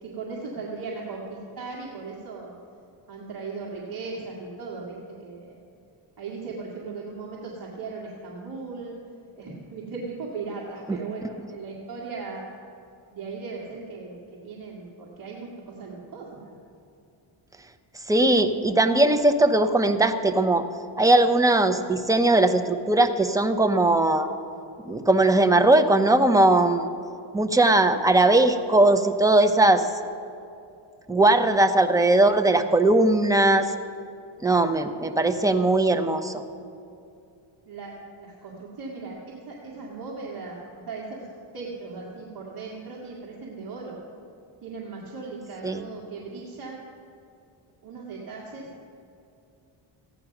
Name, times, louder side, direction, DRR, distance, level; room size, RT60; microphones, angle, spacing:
voice 1, 0.0-2.5 3.1-5.6 6.2-9.0 9.4-12.5 13.1-16.6 31.4-31.5 37.7-41.3 41.5-44.1 44.6-46.8 47.8-48.9, right 4 dB, 45° right, -5 dB, 2.0 m, -37 dB
voice 2, 18.1-20.6 21.0-24.3 24.8-26.9 27.3-29.9 31.1-33.7 34.4-36.4 45.6-45.8, right 2 dB, 5° right, 7 dB, 0.7 m, -19 dB
15.0 x 9.9 x 5.9 m, 2.6 s
cardioid pair, 110°, 49 cm